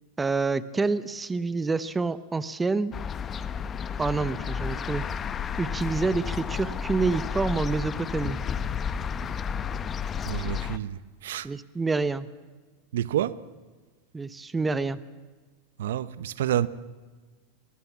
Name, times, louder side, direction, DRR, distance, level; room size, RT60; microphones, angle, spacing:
voice 1, 0.2-2.9 4.0-5.0 5.6-8.4 11.4-12.3 14.1-15.0, right 4 dB, 15° right, 0.8 m, -27 dB
sound 1, 2.9-10.8, left 7 dB, 25° left, 1.0 m, -32 dB
voice 2, 10.3-11.5 12.9-13.4 15.8-16.7, right 11 dB, 80° right, 0.9 m, -29 dB
22.5 x 20.5 x 7.3 m
supercardioid pair, 120°, 0 cm